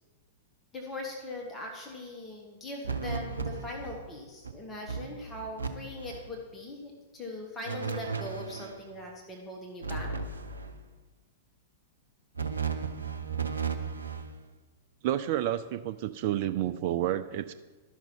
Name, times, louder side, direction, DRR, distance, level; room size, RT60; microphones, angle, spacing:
voice 1, 0.7-10.1, left 2 dB, 15° left, 0 dB, 1.6 m, -40 dB
sound 1, 2.8-4.1 4.4-4.5 4.9-5.7 6.0-6.3 7.7-8.8 9.8-10.8 12.3-14.3, right 5 dB, 80° right, 0.8 m, -35 dB
voice 2, 15.0-17.5, right 12 dB, 50° right, 11 dB, 0.4 m, -30 dB
12.0 x 6.0 x 5.5 m, 1.2 s
figure-of-eight pair, 100°, 0 cm